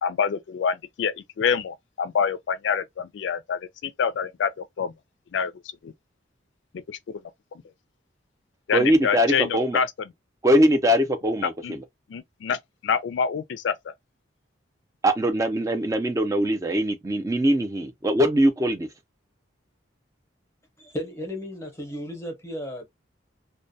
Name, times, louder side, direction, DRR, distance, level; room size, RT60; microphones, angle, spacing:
voice 1, 0.0-4.9 5.3-5.5 5.8-5.9 6.9-7.0 8.7-9.9 11.6-11.7 12.1-13.7, left 6 dB, 70° left, 0.3 m, -26 dB
voice 2, 8.7-9.8 10.4-11.8 15.0-18.9, equal, 15° right, 0.4 m, -22 dB
voice 3, 20.8-22.9, equal, 15° left, 0.8 m, -34 dB
2.2 x 2.2 x 2.6 m
head